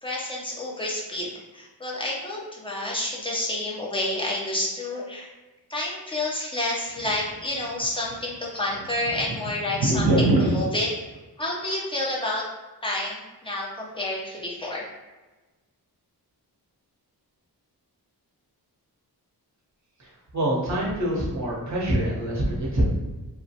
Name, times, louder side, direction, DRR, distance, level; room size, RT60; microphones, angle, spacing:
voice 1, 0.0-5.3 5.7-10.9 11.4-12.4 12.8-14.9, left 1 dB, 15° left, -4 dB, 0.5 m, -29 dB
sound 1, 6.9-7.9 8.1-8.2 8.5-10.6, right 2 dB, 70° right, 0.6 m, -23 dB
voice 2, 20.3-22.8, right 1 dB, 45° right, -3 dB, 0.9 m, -25 dB
2.9 x 2.2 x 2.7 m, 1.2 s
wide cardioid pair, 160°, 40 cm